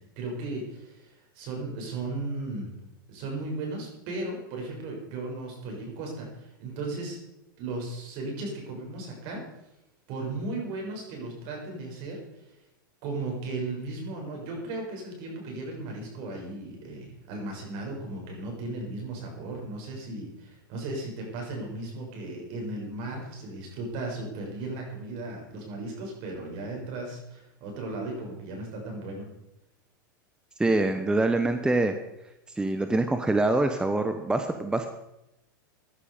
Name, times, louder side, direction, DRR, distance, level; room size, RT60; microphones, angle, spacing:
voice 1, 0.1-2.7 3.1-7.2 7.6-9.4 10.1-12.2 13.0-29.2, right 2 dB, 55° right, 0 dB, 6.9 m, -36 dB
voice 2, 30.6-31.9 32.5-34.9, right 2 dB, 5° right, 7 dB, 1.0 m, -25 dB
15.5 x 11.5 x 5.1 m, 0.89 s
hypercardioid pair, 115°, 11 cm